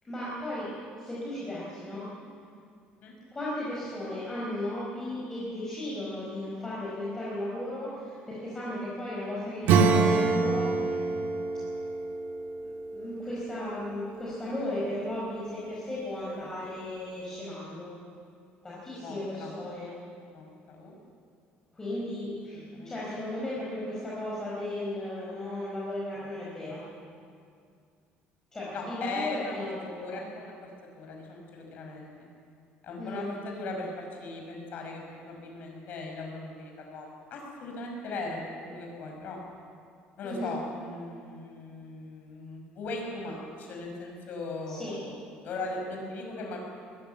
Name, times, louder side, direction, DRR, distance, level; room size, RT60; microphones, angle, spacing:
voice 1, 0.0-2.1 3.3-11.0 12.6-17.9 18.6-19.9 21.7-26.8 28.5-30.2 33.0-33.3 40.2-40.6 44.7-45.0, left 1 dB, 15° left, -7 dB, 4.7 m, -35 dB
Acoustic guitar / Strum, 9.6-14.0, right 4 dB, 65° right, 2.0 m, -26 dB
voice 2, 19.0-19.5 20.3-21.0 22.5-22.9 28.7-29.7 30.0-30.7 30.9-32.1 32.8-39.4 40.2-45.2 45.4-46.6, left 3 dB, 50° left, 1 dB, 5.7 m, -38 dB
21.5 x 14.5 x 9.1 m, 2.3 s
cardioid pair, 155°, 4 cm